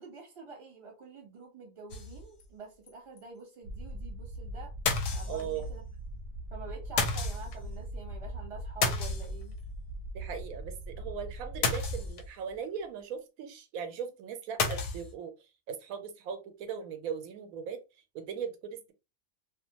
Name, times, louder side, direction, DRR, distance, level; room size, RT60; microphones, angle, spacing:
voice 1, 0.0-4.7 5.1-5.8 6.5-9.6, right 4 dB, 25° right, 0.9 m, -47 dB
sound 1, 1.9-2.5 2.9-3.0 3.2-3.3 4.9-5.7 7.0-7.6 8.8-9.7 11.6-12.4 14.6-15.1, left 4 dB, 70° left, 0.9 m, -31 dB
sound 2, 3.6-12.1, right 1 dB, 65° right, 0.7 m, -41 dB
voice 2, 5.3-5.7 10.1-17.8 18.1-18.9, right 7 dB, 85° right, 1.0 m, -39 dB
2.5 x 2.1 x 2.8 m
omnidirectional pair, 1.4 m